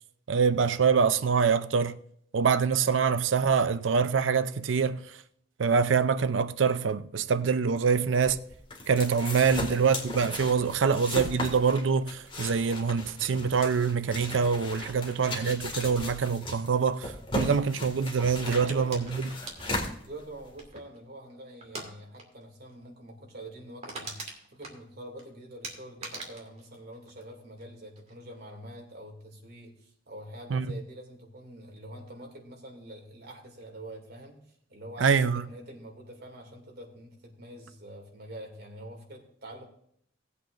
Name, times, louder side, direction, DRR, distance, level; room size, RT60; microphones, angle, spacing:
voice 1, 0.3-2.0 2.3-5.2 5.6-8.4 8.9-19.3 30.5-30.7 35.0-35.4, right 6 dB, 75° right, 0.5 m, -25 dB
voice 2, 7.8-8.2 9.5-9.7 18.5-19.0 20.0-39.7, right 1 dB, 55° right, 2.5 m, -46 dB
sound 1, 8.1-20.6, left 1 dB, 30° left, 2.1 m, -37 dB
sound 2, 18.4-21.0 21.6-21.9 22.2-22.4 22.7-22.8 23.2-23.3 23.5-25.2 25.6-27.7 28.0-28.4, right 2 dB, 35° right, 2.3 m, -42 dB
18.0 x 8.3 x 2.6 m
head